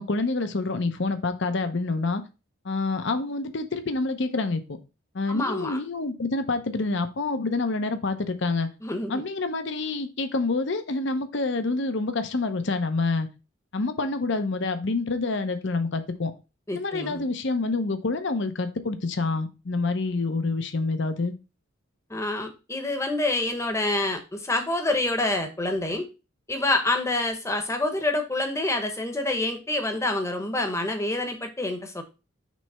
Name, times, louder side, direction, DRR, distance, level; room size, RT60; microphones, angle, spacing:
voice 1, 0.0-2.2 2.6-4.6 5.1-8.7 9.1-13.3 13.7-16.3 16.7-21.3, left 3 dB, 60° left, 9 dB, 0.7 m, -27 dB
voice 2, 5.3-5.8 8.8-9.2 16.7-17.3 22.1-26.1 26.5-32.0, left 2 dB, 15° left, 6 dB, 0.9 m, -27 dB
6.2 x 3.3 x 5.4 m, 0.30 s
head